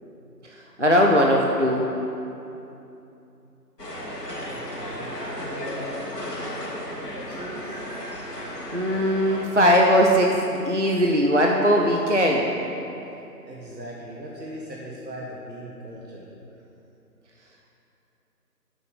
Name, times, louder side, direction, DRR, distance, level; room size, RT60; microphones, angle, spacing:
voice 1, 0.8-1.9 8.7-12.5, equal, 50° right, -1 dB, 0.5 m, -19 dB
sound 1, 3.8-9.5, equal, 75° left, 1.9 m, -34 dB
voice 2, 4.5-5.9 7.1-7.8 13.4-16.3, equal, 80° right, -4 dB, 1.4 m, -39 dB
6.9 x 6.6 x 5.2 m, 2.8 s
figure-of-eight pair, 175°, 49 cm